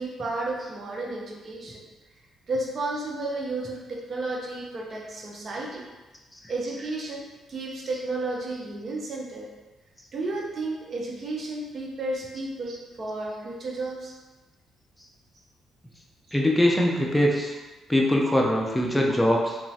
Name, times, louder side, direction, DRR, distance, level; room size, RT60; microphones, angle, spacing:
voice 1, 0.0-1.9 2.5-5.8 6.5-9.5 10.1-14.1, right 2 dB, 45° right, -1 dB, 0.6 m, -32 dB
voice 2, 16.3-17.6 17.9-19.6, left 1 dB, 10° left, -1 dB, 0.5 m, -22 dB
2.9 x 2.4 x 2.7 m, 1.1 s
cardioid pair, 90°, 0 cm